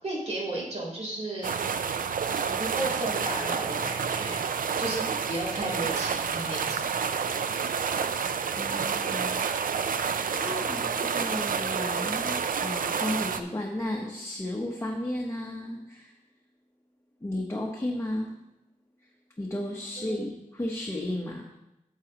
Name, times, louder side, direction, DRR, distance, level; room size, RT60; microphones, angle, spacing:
voice 1, 0.0-1.6 2.3-4.5 4.8-6.8 20.0-20.3, right 1 dB, 50° right, -4 dB, 3.5 m, -34 dB
sound 1, 1.4-13.4, right 6 dB, 80° right, 0.4 m, -29 dB
voice 2, 8.6-9.4 10.3-16.1 17.2-18.4 19.4-21.5, left 1 dB, 20° left, -1 dB, 1.0 m, -34 dB
10.0 x 7.4 x 3.0 m, 0.92 s
wide cardioid pair, 85°, 14 cm